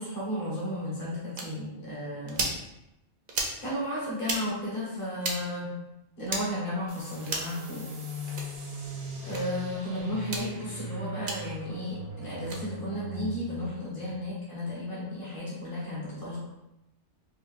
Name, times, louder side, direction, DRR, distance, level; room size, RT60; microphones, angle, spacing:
voice 1, 0.0-2.4 3.6-5.7 6.2-7.9 9.2-16.4, left 1 dB, 30° left, -7 dB, 1.3 m, -34 dB
sound 1, 1.4-1.5 2.3-2.6 3.3-3.6 4.2-4.4 5.2-5.4 6.3-6.4 7.2-7.5 8.3-8.5 9.3-9.4 10.2-10.4 11.3-11.4 12.4-12.6, right 3 dB, 55° right, 0.8 m, -32 dB
sound 2, 6.9-14.1, equal, 85° right, 1.2 m, -40 dB
4.5 x 2.6 x 2.5 m, 0.92 s
omnidirectional pair, 1.2 m